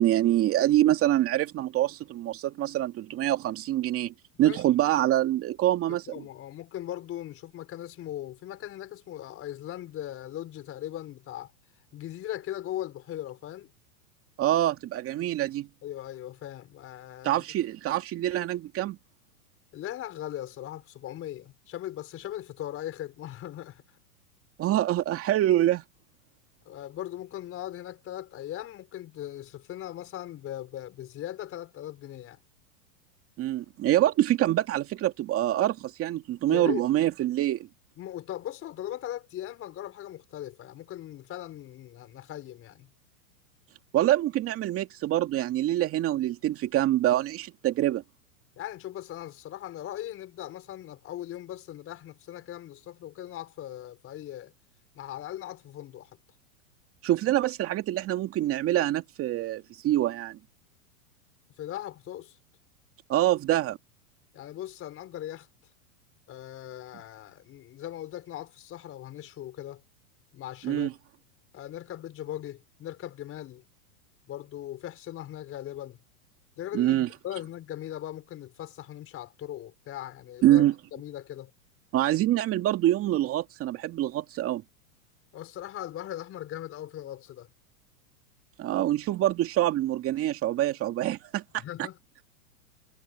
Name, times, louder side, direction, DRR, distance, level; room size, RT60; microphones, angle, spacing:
voice 1, 0.0-4.1 4.4-6.0 14.4-15.7 17.2-19.0 24.6-25.8 33.4-37.7 43.9-48.0 57.0-60.4 63.1-63.8 70.6-70.9 76.7-77.1 80.4-80.7 81.9-84.6 88.6-91.6, right 13 dB, 30° right, 2.4 m, -25 dB
voice 2, 5.9-11.5 11.9-13.7 15.8-17.4 19.7-23.8 26.6-32.4 36.5-36.9 38.0-42.9 48.6-54.5 54.9-56.2 61.6-62.4 64.3-65.5 66.3-69.8 70.3-70.9 71.5-73.6 74.3-76.0 76.6-80.6 80.9-81.5 85.3-87.5 91.6-92.0, left 12 dB, 30° left, 5.0 m, -39 dB
hypercardioid pair, 130°, 44 cm